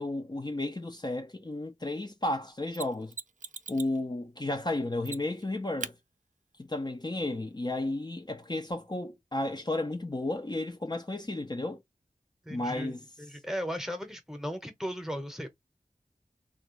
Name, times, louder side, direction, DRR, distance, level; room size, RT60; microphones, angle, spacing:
voice 1, 0.0-3.1 3.7-5.9 6.6-11.8 12.5-13.0, left 2 dB, 30° left, 0.6 m, -33 dB
Mechanisms, 2.7-4.0 5.0-5.4 5.8-6.0 8.7-8.8, right 5 dB, 65° right, 0.4 m, -40 dB
voice 2, 12.4-15.5, equal, 5° right, 1.0 m, -36 dB
3.1 x 2.4 x 3.1 m
wide cardioid pair, 50°, 14 cm